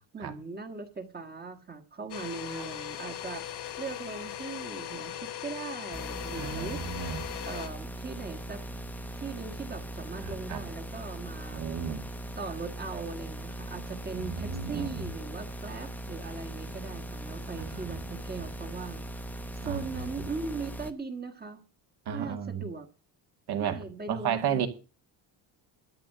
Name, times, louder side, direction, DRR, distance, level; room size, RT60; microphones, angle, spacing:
voice 1, 0.0-6.8 7.4-8.6 9.2-11.6 12.4-19.0 19.6-21.6 22.1-22.9 23.6-24.7, right 4 dB, 20° right, 1.6 m, -39 dB
Domestic sounds home sounds, 2.1-7.7, left 11 dB, 60° left, 1.6 m, -39 dB
sound 1, 5.9-20.9, right 1 dB, 5° left, 0.8 m, -40 dB
voice 2, 6.3-7.2 10.2-10.6 11.5-12.0 14.2-15.1 17.6-18.0 19.6-19.8 22.1-22.7 23.5-24.7, right 8 dB, 55° right, 2.2 m, -33 dB
13.0 x 6.8 x 7.5 m
cardioid pair, 155°, 45 cm